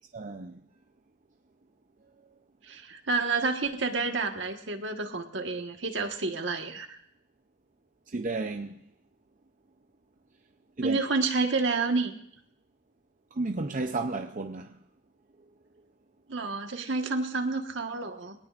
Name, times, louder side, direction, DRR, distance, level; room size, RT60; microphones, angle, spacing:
voice 1, 0.1-0.6 8.1-8.8 10.8-11.0 13.4-14.7, right 3 dB, 40° right, 0.6 m, -32 dB
voice 2, 2.6-7.0 10.8-12.1 16.3-18.3, right 3 dB, 65° right, 1.5 m, -29 dB
22.5 x 18.5 x 2.5 m
head